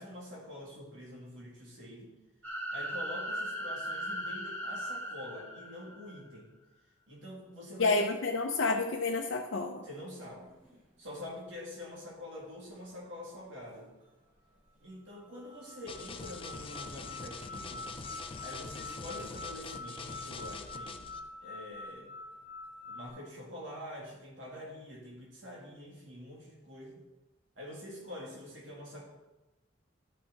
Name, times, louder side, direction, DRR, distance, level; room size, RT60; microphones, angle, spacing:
voice 1, 0.0-2.1 2.7-6.5 7.1-8.0 9.8-10.5 11.0-13.9 14.8-17.9 18.4-22.1 22.9-27.0 27.6-29.1, left 1 dB, 70° right, -3 dB, 2.6 m, -46 dB
sound 1, 2.4-6.2, equal, 10° left, 2.5 m, -38 dB
voice 2, 7.8-9.8, left 3 dB, 70° left, 1 dB, 0.7 m, -29 dB
sound 2, 10.5-10.7 11.8-12.0 12.7-12.8 13.8-13.9 14.8-14.9 15.1-23.1, left 2 dB, 40° right, 3.1 m, -46 dB
sound 3, 15.9-21.2, left 4 dB, 25° left, 0.5 m, -44 dB
12.5 x 5.9 x 4.1 m, 1.0 s
head